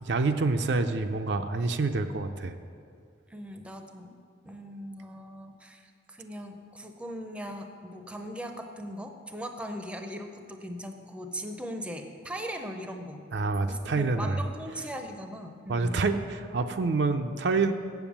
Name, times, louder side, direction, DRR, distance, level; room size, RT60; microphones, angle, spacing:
voice 1, 0.0-2.5 13.3-14.4 15.7-17.7, right 3 dB, 60° right, 7 dB, 0.5 m, -27 dB
voice 2, 3.3-4.2 4.4-13.2 13.7-16.0, equal, 5° right, 5 dB, 0.6 m, -39 dB
7.9 x 7.1 x 7.1 m, 2.3 s
head